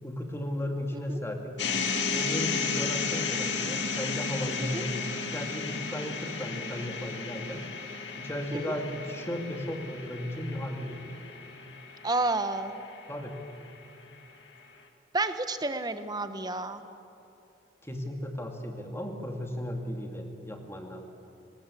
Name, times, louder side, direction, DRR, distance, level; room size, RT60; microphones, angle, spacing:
voice 1, 0.0-1.6 2.1-7.6 8.2-11.1 13.1-13.4 17.8-21.0, left 1 dB, 15° left, 3 dB, 2.3 m, -35 dB
sound 1, 1.6-13.7, left 5 dB, 65° left, 2.2 m, -34 dB
voice 2, 12.0-12.8 15.1-16.8, right 2 dB, 20° right, 9 dB, 1.1 m, -30 dB
29.5 x 18.5 x 8.5 m, 2.8 s
head